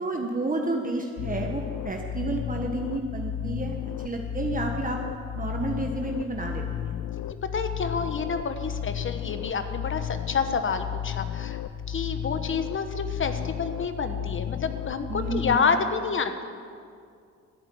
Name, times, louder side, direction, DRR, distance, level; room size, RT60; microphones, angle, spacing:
voice 1, 0.0-3.7 4.0-5.0 5.4-6.9 15.1-15.7, right 2 dB, 25° right, 2 dB, 1.4 m, -30 dB
sound 1, 1.2-15.6, left 10 dB, 55° left, 0.5 m, -33 dB
voice 2, 7.2-11.6 11.9-16.4, left 5 dB, 40° left, 8 dB, 1.2 m, -29 dB
12.5 x 9.0 x 9.2 m, 2.3 s
cardioid pair, 90°, 30 cm